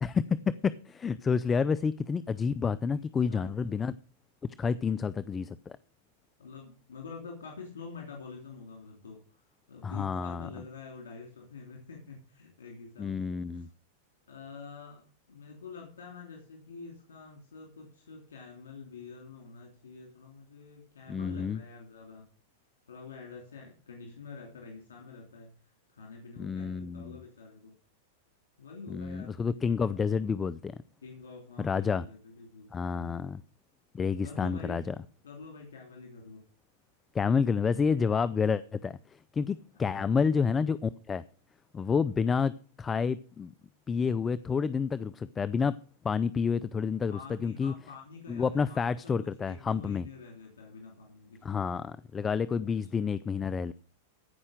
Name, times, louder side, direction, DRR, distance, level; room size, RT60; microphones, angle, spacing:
voice 1, 0.0-4.0 4.6-5.8 9.8-10.5 13.0-13.7 21.1-21.6 26.4-27.2 28.9-30.8 31.6-32.0 32.7-33.4 33.9-34.9 37.1-41.2 41.7-43.5 43.9-45.8 46.0-47.7 48.3-50.1 51.4-53.7, left 5 dB, 20° left, 0.4 m, -29 dB
voice 2, 2.9-3.5 4.9-5.0 6.4-9.2 9.7-13.7 14.3-22.2 22.9-25.5 25.9-27.7 28.6-29.4 31.0-33.3 34.2-34.8 35.2-36.4 39.7-40.2 47.1-51.8 52.6-52.7 53.0-53.1, left 4 dB, 85° left, 2.9 m, -47 dB
14.5 x 5.6 x 6.4 m
hypercardioid pair, 110°, 0 cm